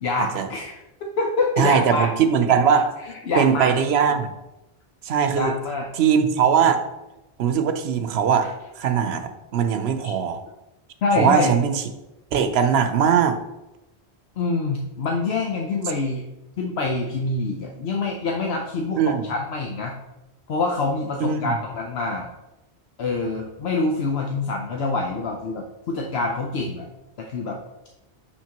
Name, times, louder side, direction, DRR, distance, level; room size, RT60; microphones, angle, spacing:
voice 1, 0.0-0.7 1.2-2.1 3.1-3.7 5.3-5.9 10.0-10.1 11.0-11.5 14.4-16.3 16.6-19.9 20.5-22.3 23.0-26.9 27.2-27.6, left 3 dB, 75° left, 1 dB, 0.9 m, -25 dB
voice 2, 1.6-3.0 3.4-4.3 5.0-5.5 6.0-6.8 7.4-8.5 8.8-10.4 11.2-11.8 12.3-13.4 19.0-19.3 21.2-21.5, right 7 dB, 80° right, 8 dB, 0.9 m, -20 dB
6.4 x 5.9 x 2.9 m, 0.95 s
omnidirectional pair, 1.1 m